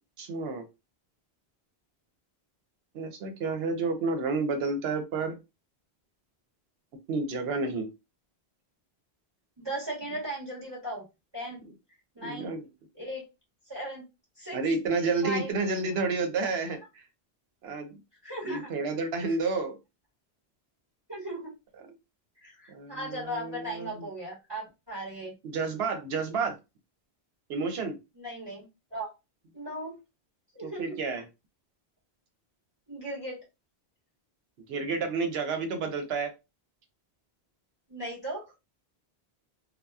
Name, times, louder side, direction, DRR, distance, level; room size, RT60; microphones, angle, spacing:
voice 1, 0.2-0.7 2.9-5.4 7.1-7.9 12.2-12.6 14.5-17.0 17.6-17.9 18.4-19.8 21.8-21.9 22.7-24.1 25.4-26.6 27.5-28.0 30.6-31.2 34.7-36.3, right 4 dB, 75° right, 6 dB, 0.9 m, -30 dB
voice 2, 9.6-11.0 11.3-11.6 12.1-12.5 12.9-13.2 13.7-14.0 14.4-14.6 15.2-15.5 18.2-18.7 19.5-19.6 21.1-21.5 22.4-25.3 28.2-28.6 28.9-29.1 29.5-30.0 30.5-31.0 32.9-33.4 37.9-38.5, right 1 dB, 25° right, -4 dB, 1.1 m, -37 dB
2.8 x 2.0 x 2.2 m, 0.25 s
omnidirectional pair, 1.1 m